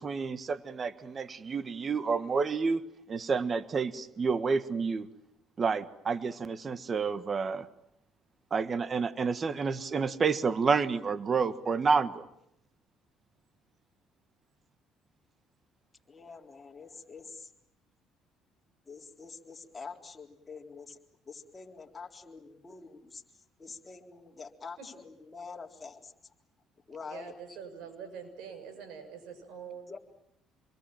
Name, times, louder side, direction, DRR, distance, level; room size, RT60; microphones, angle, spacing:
voice 1, 0.0-2.8 3.1-5.1 5.6-7.7 8.5-12.3, right 5 dB, 35° right, 13 dB, 1.4 m, -29 dB
voice 2, 16.1-17.5 18.9-21.0 21.3-23.2 23.6-26.1 26.9-27.6 29.9-30.0, left 4 dB, 20° left, 1 dB, 3.9 m, -46 dB
voice 3, 27.0-30.0, right 6 dB, 80° right, 7 dB, 6.6 m, -45 dB
27.5 x 22.0 x 8.9 m, 0.78 s
cardioid pair, 95°, 0 cm